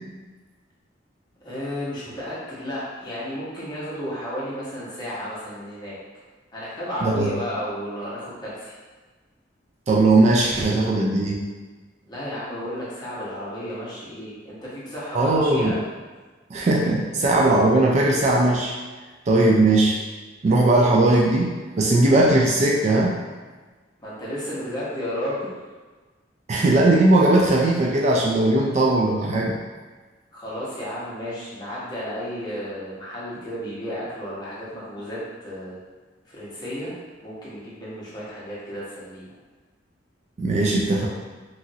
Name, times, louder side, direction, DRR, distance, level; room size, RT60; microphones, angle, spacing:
voice 1, 1.4-6.0 6.5-8.7 12.1-15.8 24.0-25.6 30.3-35.2 35.4-35.8 36.3-36.9 37.2-39.3, equal, 25° left, -9 dB, 0.9 m, -32 dB
voice 2, 9.9-11.4 15.1-15.7 16.5-18.7 19.3-20.0 20.4-23.2 26.5-29.6 40.4-41.1, right 2 dB, 40° right, -2 dB, 0.3 m, -19 dB
2.9 x 2.5 x 2.7 m, 1.3 s
head